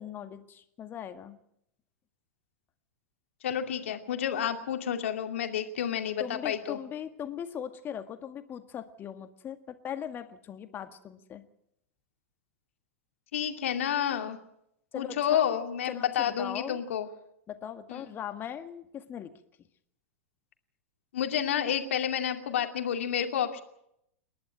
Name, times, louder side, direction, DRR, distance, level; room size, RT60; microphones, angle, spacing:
voice 1, 0.0-1.4 6.2-11.4 14.9-15.4 15.9-16.8 17.5-19.3, left 9 dB, 30° left, 8 dB, 1.9 m, -39 dB
voice 2, 3.4-6.8 13.3-14.4 14.9-17.1 17.9-18.0 21.1-23.6, left 9 dB, 65° left, 5 dB, 2.5 m, -30 dB
28.0 x 11.5 x 8.8 m, 0.77 s
figure-of-eight pair, 95°, 8 cm